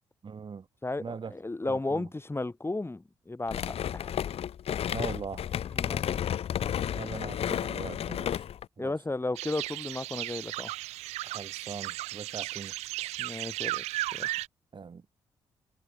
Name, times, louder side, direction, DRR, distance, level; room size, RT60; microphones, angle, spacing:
voice 1, 0.2-0.7 1.0-1.3 1.6-2.1 4.9-5.5 6.9-8.5 8.8-8.9 11.2-13.1 14.7-15.0, right 5 dB, 50° right, 5.5 m, -41 dB
voice 2, 0.8-4.1 5.7-6.1 8.8-10.7 13.2-14.3, left 2 dB, 20° left, 7.4 m, -34 dB
sound 1, 3.5-8.7, left 9 dB, 70° left, 1.8 m, -32 dB
sound 2, 9.3-14.5, right 18 dB, 90° right, 6.4 m, -35 dB
supercardioid pair, 50°, 11 cm